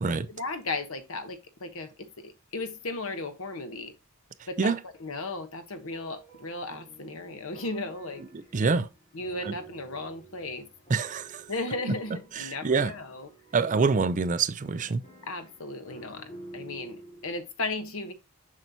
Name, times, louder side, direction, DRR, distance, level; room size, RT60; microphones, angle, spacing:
voice 1, 0.3-3.9 4.5-4.7 5.0-8.2 9.1-10.6 11.5-13.3 15.3-16.2 16.5-18.1, left 2 dB, 65° left, 1.1 m, -35 dB
sound 1, 5.9-17.4, right 3 dB, 30° left, 3.9 m, -50 dB
voice 2, 8.3-8.9 9.4-9.6 10.9-11.5 12.3-12.9 13.5-15.0, right 4 dB, 35° right, 0.4 m, -26 dB
7.5 x 5.4 x 2.8 m
head